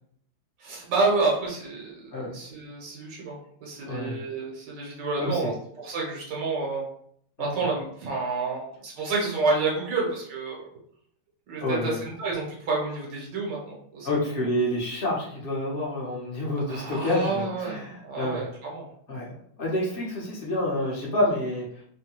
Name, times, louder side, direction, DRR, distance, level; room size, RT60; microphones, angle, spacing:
voice 1, 0.6-6.8 7.4-10.6 11.5-14.1 16.7-18.9, right 3 dB, 70° right, -3 dB, 1.5 m, -29 dB
voice 2, 3.9-4.2 5.2-5.5 7.4-7.7 11.6-12.0 14.0-18.4 19.1-21.6, left 1 dB, 40° left, -5 dB, 0.8 m, -28 dB
3.4 x 2.2 x 2.9 m, 0.65 s
omnidirectional pair, 2.0 m